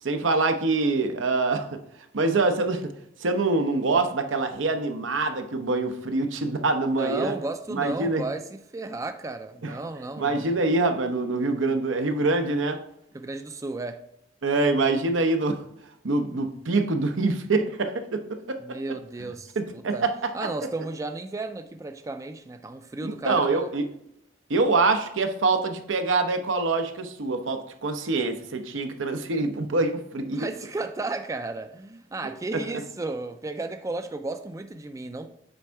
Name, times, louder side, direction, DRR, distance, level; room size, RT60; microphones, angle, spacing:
voice 1, 0.0-1.8 2.1-2.9 3.2-7.3 7.7-8.2 9.6-9.8 10.2-12.8 14.4-15.6 16.0-18.6 19.6-20.5 23.0-23.8 24.5-30.5 32.2-32.3 32.7-32.8, right 3 dB, 85° right, 0.8 m, -25 dB
voice 2, 6.9-10.4 13.1-14.0 18.6-20.0 20.3-23.7 30.3-35.3, right 2 dB, 15° right, 0.3 m, -34 dB
7.8 x 3.5 x 4.5 m
head